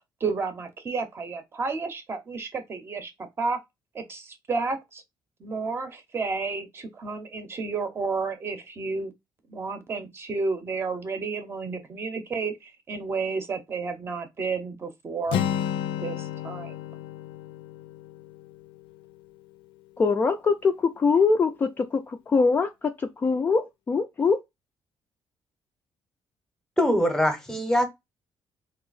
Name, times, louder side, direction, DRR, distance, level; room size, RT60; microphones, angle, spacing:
voice 1, 0.2-3.1 3.4-3.6 3.9-5.0 5.4-9.1 9.5-15.4 16.0-16.8, right 4 dB, 30° right, 0.7 m, -31 dB
Acoustic guitar, 15.3-19.2, left 9 dB, 85° left, 0.5 m, -32 dB
voice 2, 20.0-24.4, left 4 dB, 20° left, 0.3 m, -23 dB
voice 3, 26.8-27.9, equal, 5° left, 0.7 m, -22 dB
3.4 x 2.8 x 3.9 m
cardioid pair, 180°, 8 cm